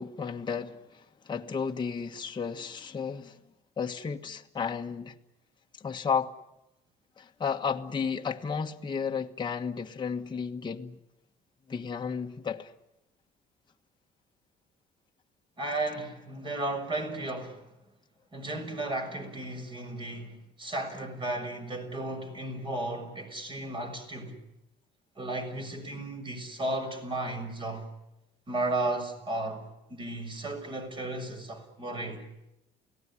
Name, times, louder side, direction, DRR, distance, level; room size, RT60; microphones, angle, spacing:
voice 1, 0.0-3.4 3.8-5.1 5.7-6.3 7.2-11.0 11.7-12.7, left 6 dB, 25° left, 1.5 m, -33 dB
voice 2, 15.6-17.7 18.3-24.4 25.2-27.9 28.5-29.6 29.9-32.2, right 2 dB, 30° right, 6.7 m, -34 dB
29.0 x 18.0 x 10.0 m
cardioid pair, 110°, 17 cm